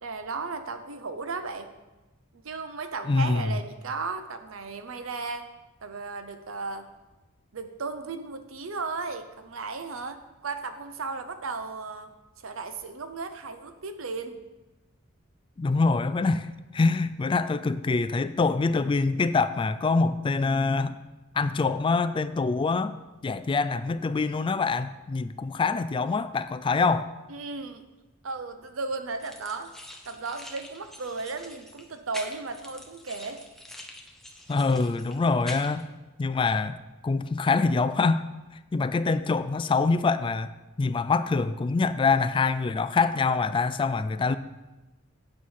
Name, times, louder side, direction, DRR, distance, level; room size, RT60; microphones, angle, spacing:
voice 1, 0.0-1.7 2.3-5.5 5.8-6.9 7.5-14.4 27.3-27.8 28.2-29.7 30.1-33.4, right 4 dB, 85° right, 9 dB, 0.8 m, -35 dB
voice 2, 3.1-3.6 15.6-21.0 21.3-27.1 34.5-35.9 36.2-36.8 37.0-38.2 38.7-40.5 40.8-44.4, left 4 dB, 25° left, 13 dB, 0.3 m, -25 dB
sound 1, 29.2-35.8, left 1 dB, ahead, 0.9 m, -45 dB
8.9 x 5.4 x 6.4 m, 1.1 s
head